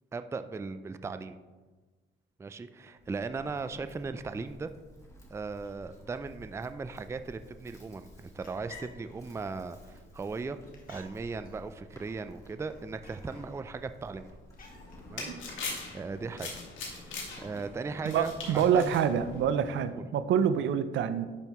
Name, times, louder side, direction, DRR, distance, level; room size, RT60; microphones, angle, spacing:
voice 1, 0.1-1.4 2.4-4.7 5.3-10.6 10.9-14.3 15.0-16.5 16.9-19.0 19.9-20.0 20.5-20.7, right 4 dB, 15° right, 11 dB, 0.3 m, -38 dB
Livestock farm animals working animals, 3.0-19.5, equal, 15° left, 1.8 m, -54 dB
sound 1, 8.1-15.9, left 4 dB, 45° left, 1.8 m, -57 dB
sound 2, 14.7-19.8, left 3 dB, 75° left, 1.8 m, -42 dB
voice 2, 18.0-21.3, right 8 dB, 70° right, 12 dB, 0.5 m, -27 dB
10.5 x 5.5 x 3.0 m, 1.3 s
cardioid pair, 90°, 20 cm